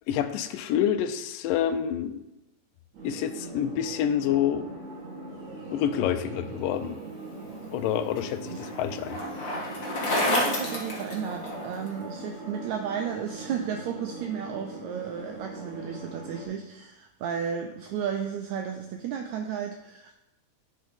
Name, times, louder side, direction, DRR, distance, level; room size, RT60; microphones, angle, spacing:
voice 1, 0.1-2.2 3.0-4.7 5.7-7.1 7.7-9.2, left 10 dB, 85° left, 10 dB, 2.2 m, -27 dB
sound 1, 2.9-16.5, right 2 dB, 60° right, 3.4 m, -41 dB
Bicycle, 7.5-11.9, left 1 dB, 60° left, 0.8 m, -30 dB
voice 2, 10.2-20.1, right 8 dB, 90° right, 4 dB, 1.6 m, -33 dB
9.5 x 4.0 x 5.2 m, 0.91 s
omnidirectional pair, 3.8 m